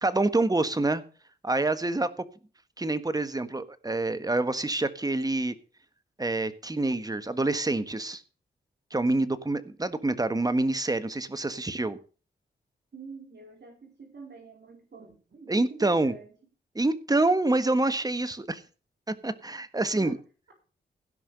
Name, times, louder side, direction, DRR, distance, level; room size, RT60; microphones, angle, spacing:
voice 1, 0.0-1.0 1.4-2.1 2.8-5.5 6.2-8.2 8.9-12.0 15.5-16.1 16.7-18.6 19.1-20.2, right 2 dB, 20° right, 12 dB, 1.5 m, -26 dB
voice 2, 12.9-16.3 19.9-20.2, right 4 dB, 65° right, 2 dB, 4.3 m, -46 dB
16.5 x 5.8 x 6.8 m, 0.37 s
cardioid pair, 65°, 19 cm